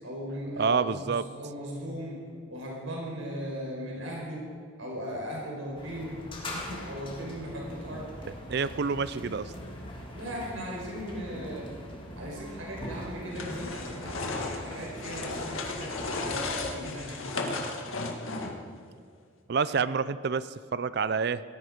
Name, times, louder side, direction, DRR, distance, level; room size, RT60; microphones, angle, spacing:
voice 1, 0.0-4.5 4.8-8.3 10.1-11.7 12.1-17.6 19.7-19.8, equal, 80° right, -2 dB, 5.0 m, -38 dB
voice 2, 0.6-1.2 8.5-9.5 19.5-21.4, right 5 dB, 55° right, 16 dB, 0.4 m, -28 dB
sound 1, 5.7-16.8, left 1 dB, 25° left, 2.3 m, -42 dB
sound 2, 13.3-18.7, left 3 dB, 85° left, 1.8 m, -35 dB
18.0 x 14.0 x 5.2 m, 2.1 s
head